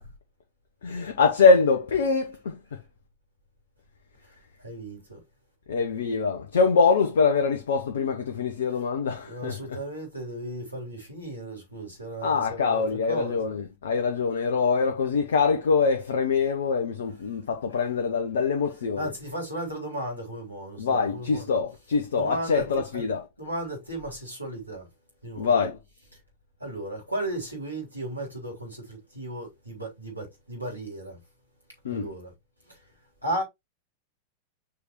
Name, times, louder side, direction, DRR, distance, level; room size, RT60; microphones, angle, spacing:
voice 1, 0.8-2.6 5.7-9.6 12.2-19.1 20.8-23.2 25.4-25.8 31.8-32.1, left 5 dB, 65° left, 1.1 m, -24 dB
voice 2, 4.6-5.2 8.7-8.8 9.2-13.4 19.0-21.5 22.1-22.7 22.9-23.0 23.4-24.9 25.2-25.6 26.1-26.2 26.6-31.2 31.9-32.3 32.7-32.8 33.2-33.4, right 1 dB, 85° right, 3.9 m, -35 dB
6.6 x 5.1 x 3.2 m
figure-of-eight pair, 90°, 0 cm